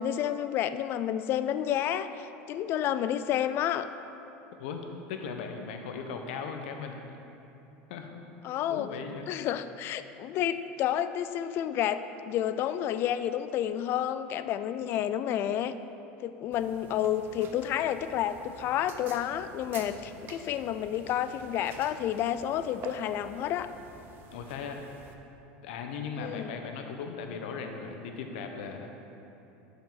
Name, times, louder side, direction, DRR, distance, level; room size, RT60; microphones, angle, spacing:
voice 1, 0.0-3.9 8.4-8.9 9.3-15.7 16.2-23.7 26.2-26.5, left 10 dB, 45° left, 12 dB, 0.3 m, -30 dB
voice 2, 4.6-7.0 7.9-8.1 8.7-9.2 24.3-24.8 25.6-28.9, left 5 dB, 80° left, 4 dB, 0.9 m, -38 dB
sound 1, 16.5-25.1, right 5 dB, 40° right, 0.7 m, -49 dB
11.5 x 5.3 x 4.0 m, 3.0 s
supercardioid pair, 135°, 6 cm